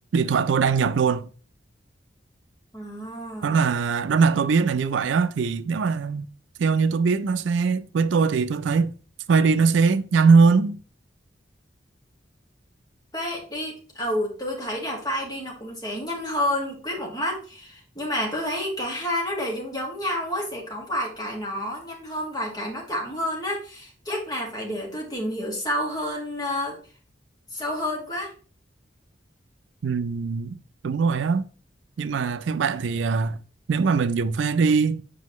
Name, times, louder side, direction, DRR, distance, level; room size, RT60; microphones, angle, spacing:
voice 1, 0.1-1.3 3.4-6.3 6.6-8.9 9.3-10.8 29.8-30.6 30.8-31.4 32.0-33.4 33.7-35.0, right 5 dB, 75° right, 0.4 m, -21 dB
voice 2, 2.7-3.6 13.1-26.8 27.5-28.3, left 1 dB, 20° left, 1.9 m, -29 dB
7.6 x 5.1 x 3.0 m
head